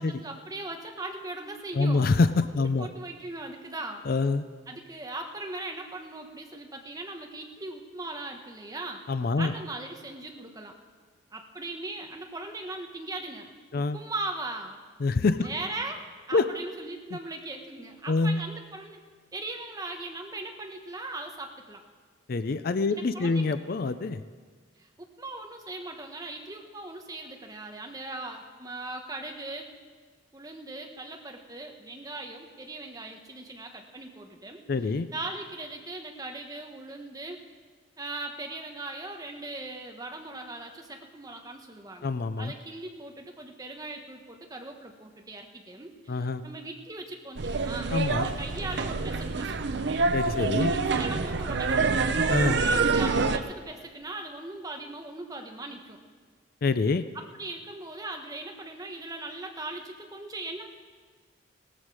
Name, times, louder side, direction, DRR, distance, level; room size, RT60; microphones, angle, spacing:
voice 1, 0.0-2.1 2.6-4.0 4.7-9.0 9.4-10.7 11.3-14.8 15.4-19.0 19.3-21.8 22.9-23.5 24.8-29.7 30.3-37.4 38.0-47.9 48.2-49.8 50.4-52.1 52.6-56.0 57.1-60.7, right 2 dB, 20° right, 3 dB, 1.1 m, -39 dB
voice 2, 1.8-2.9 4.1-4.4 9.1-9.5 13.7-14.0 15.0-15.5 16.3-16.5 18.1-18.4 22.3-24.2 34.7-35.1 42.0-42.5 46.1-46.4 47.9-48.3 50.1-50.7 52.3-52.6 56.6-57.0, left 3 dB, 50° left, 12 dB, 0.4 m, -25 dB
sound 1, 47.4-53.4, right 4 dB, 60° right, 0.6 m, -26 dB
17.5 x 13.5 x 4.8 m, 1.5 s
head